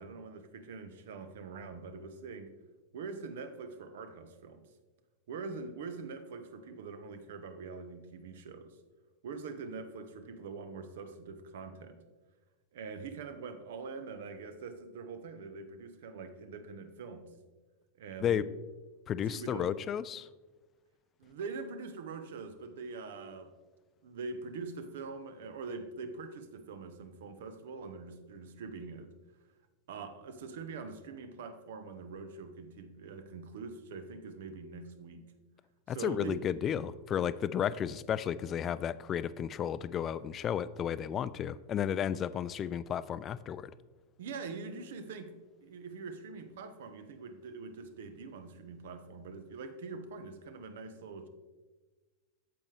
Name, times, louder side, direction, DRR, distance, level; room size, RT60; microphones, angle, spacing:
voice 1, 0.0-2.5 2.9-4.7 5.3-8.8 9.2-12.0 12.7-17.3 18.0-18.5 19.2-19.7 21.2-23.5 24.0-29.1 29.9-35.2 35.9-36.4 44.2-51.3, right 4 dB, 55° right, 9 dB, 0.9 m, -44 dB
voice 2, 19.1-20.3 35.9-43.7, left 9 dB, 30° left, 16 dB, 0.3 m, -33 dB
8.6 x 7.8 x 3.3 m, 1.2 s
figure-of-eight pair, 90°, 0 cm